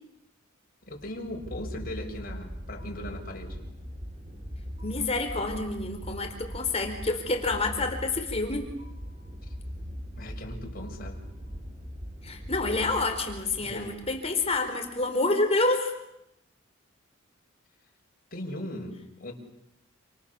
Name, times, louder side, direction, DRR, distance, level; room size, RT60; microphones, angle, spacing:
voice 1, 0.9-3.6 10.2-11.2 13.6-13.9 18.3-19.3, left 1 dB, 45° left, 1 dB, 6.3 m, -38 dB
sound 1, 0.9-15.1, equal, 30° right, 4.1 m, -40 dB
voice 2, 4.8-8.7 12.2-15.9, left 3 dB, 30° left, 5 dB, 4.7 m, -28 dB
29.0 x 29.0 x 7.2 m, 0.81 s
head